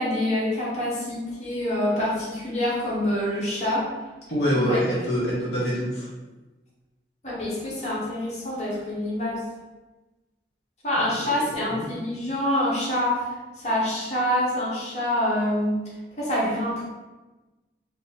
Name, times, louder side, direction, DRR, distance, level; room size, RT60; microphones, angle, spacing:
voice 1, 0.0-3.8 4.5-4.8 5.1-5.2 7.2-9.4 10.8-13.3 13.6-15.8 16.2-16.8, left 1 dB, 40° left, -7 dB, 1.0 m, -26 dB
voice 2, 4.3-6.1 11.0-11.9, equal, 65° left, -7 dB, 0.9 m, -26 dB
2.6 x 2.5 x 4.0 m, 1.2 s
head